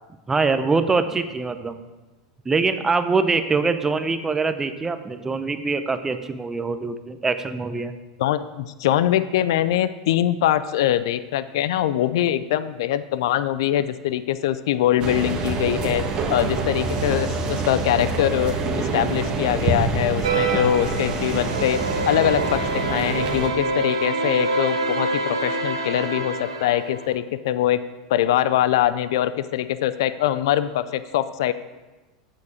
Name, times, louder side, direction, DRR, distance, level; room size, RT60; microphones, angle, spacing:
voice 1, 0.3-1.8 2.5-7.9, right 4 dB, 15° right, 10 dB, 0.6 m, -23 dB
voice 2, 8.2-16.0 16.3-21.8 22.1-27.8 28.1-31.5, left 12 dB, 65° left, 14 dB, 0.4 m, -23 dB
sound 1, 15.0-23.5, right 3 dB, 35° right, 1.3 m, -26 dB
sound 2, 20.2-27.1, right 2 dB, 80° right, 0.9 m, -26 dB
8.1 x 7.2 x 4.8 m, 1.2 s
hypercardioid pair, 85°, 3 cm